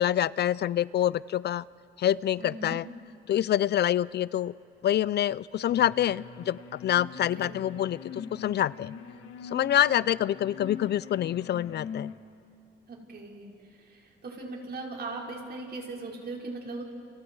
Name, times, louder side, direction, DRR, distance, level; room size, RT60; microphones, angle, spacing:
voice 1, 0.0-1.6 2.0-2.8 3.3-4.5 4.8-8.9 9.5-12.1, left 11 dB, 60° left, 20 dB, 0.4 m, -26 dB
voice 2, 2.4-2.8 7.4-7.6 12.9-16.8, right 3 dB, 55° right, -1 dB, 5.2 m, -39 dB
sound 1, 5.7-12.1, left 6 dB, 90° left, 1.9 m, -42 dB
29.5 x 29.0 x 4.7 m, 2.7 s
cardioid pair, 90°, 20 cm